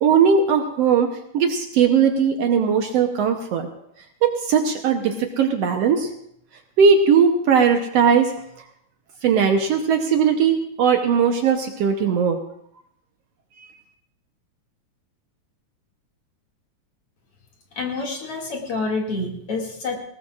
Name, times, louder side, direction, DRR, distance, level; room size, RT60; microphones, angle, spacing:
voice 1, 0.0-3.7 4.2-6.1 6.8-8.3 9.2-12.4 13.6-13.7, right 6 dB, 65° right, 4 dB, 1.8 m, -19 dB
voice 2, 17.8-20.0, left 3 dB, 50° left, -1 dB, 3.1 m, -27 dB
20.0 x 18.0 x 2.5 m, 0.72 s
omnidirectional pair, 3.4 m